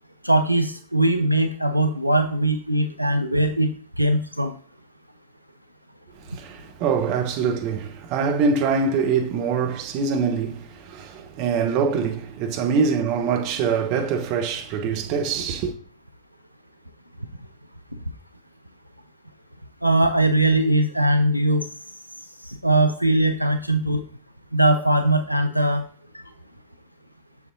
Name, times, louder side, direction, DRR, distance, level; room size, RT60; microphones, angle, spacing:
voice 1, 0.2-3.7 4.0-4.5 19.8-21.6 22.5-24.0 24.5-25.8, right 1 dB, 90° right, 0.4 m, -20 dB
voice 2, 6.2-15.7, right 5 dB, 45° right, 1.0 m, -24 dB
7.0 x 6.6 x 2.7 m
figure-of-eight pair, 90°, 0 cm